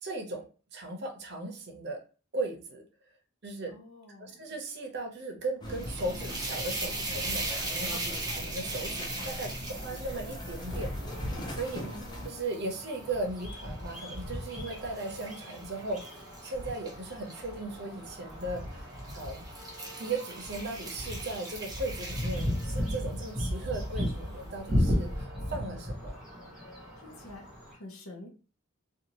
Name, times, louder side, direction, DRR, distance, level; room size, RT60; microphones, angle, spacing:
voice 1, 0.0-2.0 2.3-2.8 3.4-3.7 4.2-10.9 11.5-11.8 12.2-16.0 16.4-18.8 19.1-19.4 20.0-26.2, right 2 dB, 55° right, 3 dB, 0.7 m, -37 dB
voice 2, 3.7-4.5 11.8-12.1 27.0-28.3, left 1 dB, 90° left, 1 dB, 0.7 m, -48 dB
sound 1, 5.6-12.3, left 1 dB, 20° left, 0.5 m, -40 dB
sound 2, 5.7-12.9 13.4-17.4 18.3-18.6 19.0-23.1, right 2 dB, 20° right, 0.7 m, -39 dB
sound 3, 10.7-27.8, equal, 5° right, 1.1 m, -36 dB
2.6 x 2.4 x 2.8 m, 0.36 s
head